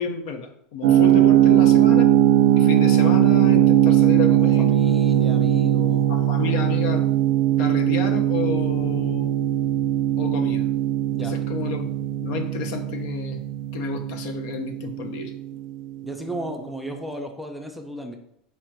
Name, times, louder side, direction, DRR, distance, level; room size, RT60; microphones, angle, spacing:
voice 1, 0.0-2.1 2.6-4.7 6.1-7.0 7.6-9.3 10.2-10.7 11.2-11.9 12.2-13.4 13.7-15.3, left 5 dB, 70° left, 5 dB, 0.7 m, -30 dB
sound 1, 0.8-15.6, right 12 dB, 85° right, 0.4 m, -19 dB
voice 2, 4.4-6.1 11.1-11.3 16.0-18.2, right 1 dB, ahead, 3 dB, 0.5 m, -34 dB
4.3 x 2.5 x 4.5 m, 0.71 s
supercardioid pair, 130°, 3 cm